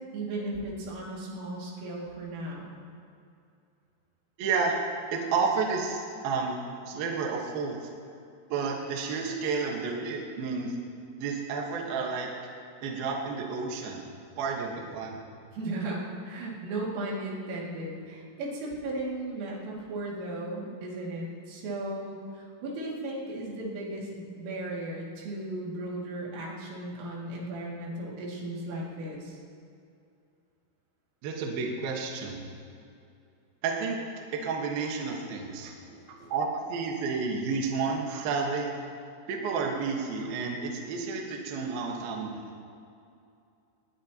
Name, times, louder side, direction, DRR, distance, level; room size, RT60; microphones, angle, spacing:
voice 1, 0.1-2.8 15.5-29.4 35.9-36.3, right 1 dB, 80° right, -4 dB, 5.1 m, -36 dB
voice 2, 4.4-4.8 5.1-6.6 6.9-7.9 8.5-10.8 11.2-12.3 12.8-14.0 14.4-15.2 31.2-32.4 33.6-35.7 36.1-38.7 39.3-42.4, right 4 dB, 65° right, 0 dB, 2.6 m, -31 dB
20.0 x 18.5 x 3.0 m, 2.5 s
omnidirectional pair, 5.8 m